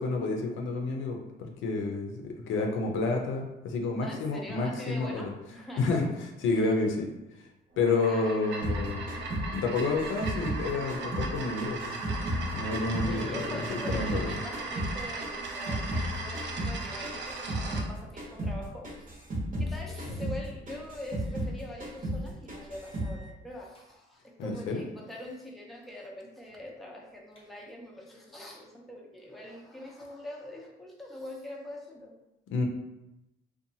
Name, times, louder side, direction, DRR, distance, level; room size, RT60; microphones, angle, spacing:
voice 1, 0.0-5.3 5.8-6.1 6.4-7.1 7.8-9.1 9.5-12.0 12.5-14.4 24.4-24.8 32.5-32.6, left 3 dB, 75° left, 2 dB, 0.5 m, -30 dB
voice 2, 4.0-5.9 6.5-6.7 8.1-8.5 13.1-19.2 19.6-32.1, left 1 dB, ahead, -3 dB, 0.5 m, -44 dB
sound 1, 7.7-17.9, right 3 dB, 65° right, 0.5 m, -38 dB
sound 2, 8.6-11.3 11.6-14.3 14.5-17.9 18.2-18.6 18.8-21.5 21.8-22.2 22.5-23.1, equal, 40° right, 1.0 m, -34 dB
sound 3, 19.9-20.5 21.2-21.4 21.8-21.9 22.8-23.9 24.4-24.8 25.1-25.4 25.8-26.2 26.5-26.6 27.1-27.8, equal, 30° left, 0.9 m, -51 dB
2.7 x 2.2 x 2.7 m, 0.94 s
cardioid pair, 90°, 20 cm